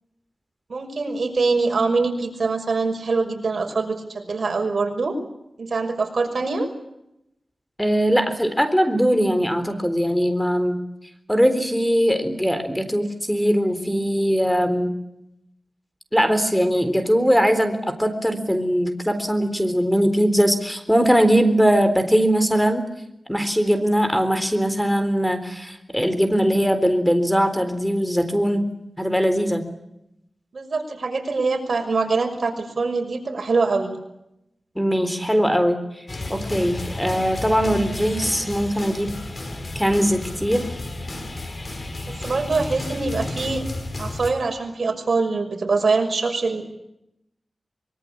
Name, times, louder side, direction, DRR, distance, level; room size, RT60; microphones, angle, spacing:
voice 1, 0.7-5.2 5.6-6.7 30.5-33.9 42.2-43.6 44.0-46.6, right 4 dB, 70° right, 4 dB, 5.9 m, -23 dB
voice 2, 7.8-10.8 11.3-14.9 16.1-22.8 23.3-29.7 34.8-39.2 39.8-40.7, equal, 5° left, 10 dB, 3.9 m, -21 dB
sound 1, 36.1-44.3, left 2 dB, 50° left, 5.9 m, -32 dB
25.0 x 23.5 x 8.7 m, 0.83 s
wide cardioid pair, 65°, 0 cm